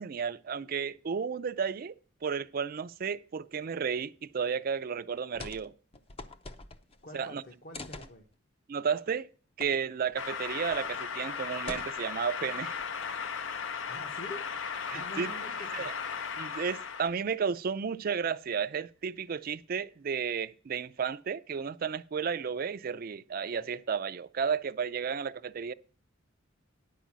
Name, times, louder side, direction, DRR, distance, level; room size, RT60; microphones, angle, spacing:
voice 1, 0.0-1.9 2.2-5.7 7.1-7.4 8.7-9.3 9.6-12.7 14.9-15.3 15.7-15.9 16.4-25.7, right 6 dB, 50° right, 0.4 m, -33 dB
sound 1, 5.3-5.7 5.9-7.0 7.7-8.2 9.6-9.7 10.1-10.2 10.7-11.0 11.7-12.2 12.8-13.3, left 2 dB, 30° left, 0.6 m, -44 dB
voice 2, 7.0-8.3 13.9-14.4 14.9-15.9, left 1 dB, 50° left, 1.3 m, -45 dB
sound 2, 10.2-17.1, left 6 dB, 70° left, 0.6 m, -36 dB
10.5 x 4.7 x 7.3 m
head